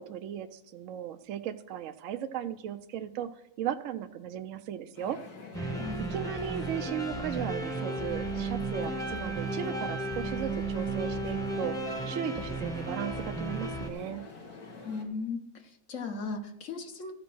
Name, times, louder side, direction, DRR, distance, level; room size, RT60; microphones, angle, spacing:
voice 1, 0.0-3.3 3.6-5.2 5.6-5.8 6.1-14.2, right 10 dB, 65° right, 7 dB, 0.8 m, -36 dB
sound 1, 5.0-15.0, left 3 dB, 85° left, 2.2 m, -46 dB
sound 2, 5.5-13.9, right 2 dB, 5° left, 0.8 m, -34 dB
voice 2, 5.8-6.1 14.8-17.1, left 4 dB, 60° left, 5 dB, 1.4 m, -37 dB
14.5 x 5.2 x 6.1 m, 0.80 s
omnidirectional pair, 1.6 m